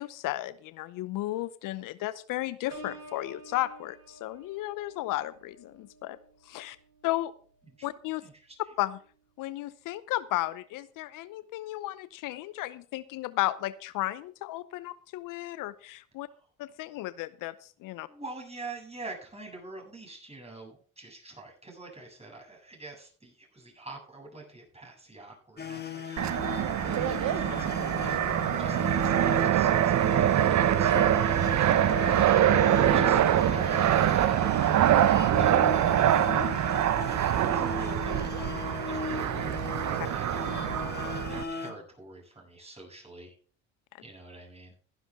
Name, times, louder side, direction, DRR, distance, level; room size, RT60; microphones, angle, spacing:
voice 1, 0.0-6.2 6.4-6.8 7.0-7.3 7.8-8.2 8.8-9.0 9.4-16.3 16.6-18.1 30.9-31.0, left 16 dB, 65° left, 16 dB, 0.8 m, -34 dB
Piano, 2.7-8.3 8.8-9.1, right 1 dB, 70° right, 4.7 m, -51 dB
voice 2, 8.2-8.6 18.1-39.7 40.0-40.7 41.2-43.3 44.0-44.7, right 2 dB, 20° right, -1 dB, 7.9 m, -47 dB
sound 1, 25.6-41.7, left 4 dB, 30° left, 2.6 m, -37 dB
Fixed-wing aircraft airplane, 26.2-41.4, right 11 dB, 55° right, 1.0 m, -24 dB
15.5 x 11.0 x 3.7 m, 0.43 s
hypercardioid pair, 65°, 35 cm